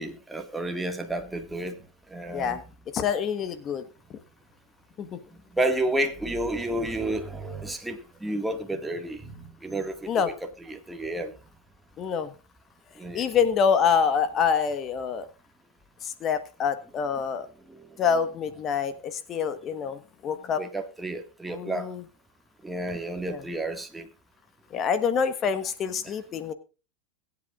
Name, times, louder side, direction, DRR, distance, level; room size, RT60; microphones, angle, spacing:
voice 1, 0.0-1.8 2.1-2.6 5.5-10.3 10.7-11.3 13.0-13.3 17.7-17.8 20.6-21.9 22.6-24.1, right 1 dB, 5° right, 4 dB, 1.9 m, -31 dB
voice 2, 2.3-2.6 2.9-3.8 4.1-4.2 5.0-5.2 10.1-10.3 12.0-12.3 13.1-15.3 16.0-17.5 18.0-20.6 21.5-22.0 23.3-23.4 24.7-26.5, left 6 dB, 35° left, 10 dB, 1.3 m, -26 dB
21.5 x 8.4 x 2.5 m, 0.32 s
supercardioid pair, 115°, 0 cm